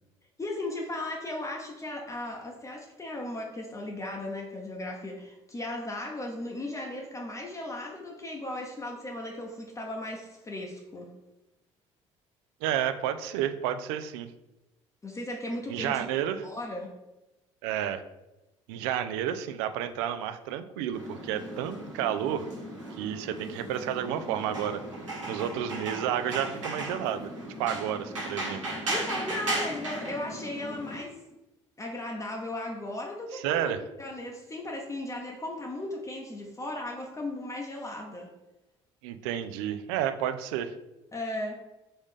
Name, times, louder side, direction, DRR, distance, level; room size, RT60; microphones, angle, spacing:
voice 1, 0.4-11.1 15.0-16.0 16.4-16.9 28.9-31.2 31.8-33.7 34.0-38.3 41.1-41.6, left 1 dB, 20° left, 0 dB, 0.8 m, -36 dB
voice 2, 12.6-14.3 15.7-16.5 17.6-18.0 18.7-22.5 22.9-24.8 25.3-27.3 27.6-28.6 33.3-33.8 39.0-40.7, right 10 dB, 65° right, 10 dB, 0.4 m, -31 dB
sound 1, 20.9-31.0, right 1 dB, 80° right, 1.2 m, -36 dB
4.0 x 3.5 x 3.6 m, 1.0 s
figure-of-eight pair, 50°, 16 cm